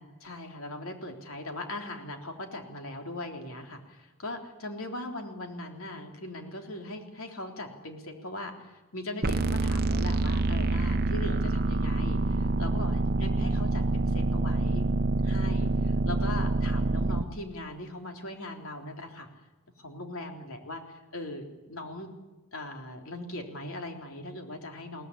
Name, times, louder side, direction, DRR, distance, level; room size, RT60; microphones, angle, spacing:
voice 1, 0.0-14.9 15.2-19.3 19.8-22.1 22.5-25.1, left 1 dB, 65° left, 3 dB, 3.6 m, -40 dB
sound 1, 9.2-17.2, right 2 dB, 45° right, 0.9 m, -26 dB
22.5 x 18.0 x 9.9 m, 1.2 s
head